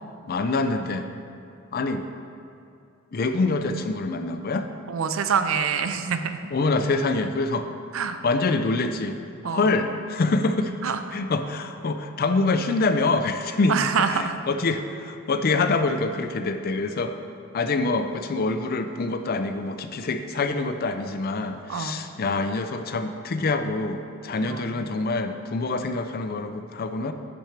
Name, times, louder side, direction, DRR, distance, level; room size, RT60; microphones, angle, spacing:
voice 1, 0.3-1.1 1.7-2.1 3.1-4.7 6.5-7.7 8.2-9.2 9.4-13.8 14.1-17.1 17.5-27.1, left 3 dB, 45° left, 8 dB, 0.5 m, -25 dB
voice 2, 4.9-6.4 7.9-8.2 9.4-9.7 10.8-11.0 13.7-14.4 21.7-22.0 24.4-24.7, right 6 dB, 70° right, 9 dB, 0.5 m, -26 dB
10.5 x 6.1 x 3.4 m, 2.6 s
head